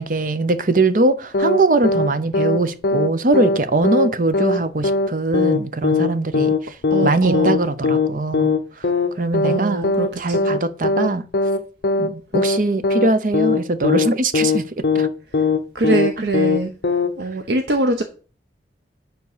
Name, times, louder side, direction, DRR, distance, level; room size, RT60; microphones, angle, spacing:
voice 1, 0.0-6.7 7.0-8.6 9.2-9.9 10.2-11.3 12.0-15.1 16.2-16.3, right 2 dB, 50° right, 0.7 m, -21 dB
sound 1, 1.3-1.6 1.8-2.1 2.3-2.6 2.8-3.1 3.3-3.6 3.8-4.1 4.3-4.6 4.8-5.1 5.3-5.6 5.8-6.1 6.3-6.6 6.8-7.1 7.3-7.6 7.8-8.1 8.3-8.6 8.8-9.1 9.3-9.6 9.8-10.1 10.3-10.6 10.8-11.1 11.3-11.6 11.8-12.1 12.3-12.6 12.8-13.1 13.3-13.6 13.8-14.1 14.3-14.6 14.8-15.1 15.3-15.6 15.8-16.1 16.3-16.6 16.8-17.1, left 4 dB, 60° left, 0.8 m, -19 dB
voice 2, 6.9-7.6 9.4-10.4 15.7-16.7 17.2-18.0, right 2 dB, 75° right, 0.9 m, -22 dB
9.6 x 3.8 x 6.7 m
head